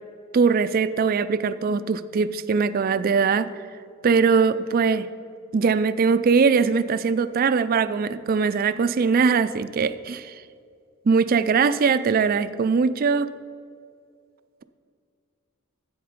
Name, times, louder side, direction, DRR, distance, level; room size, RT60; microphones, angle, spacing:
voice 1, 0.3-3.5 4.0-5.1 5.5-10.3 11.1-13.3, right 5 dB, 45° right, 13 dB, 0.4 m, -21 dB
10.5 x 7.9 x 5.0 m, 2.3 s
head